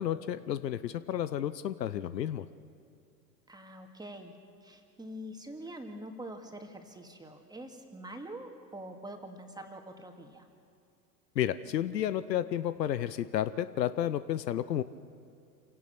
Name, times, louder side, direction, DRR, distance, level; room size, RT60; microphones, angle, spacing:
voice 1, 0.0-2.5 11.3-14.8, left 11 dB, 75° left, 14 dB, 0.9 m, -31 dB
voice 2, 3.5-10.5, right 1 dB, 10° right, 4 dB, 2.3 m, -45 dB
27.5 x 17.0 x 6.1 m, 2.6 s
figure-of-eight pair, 90°, 50 cm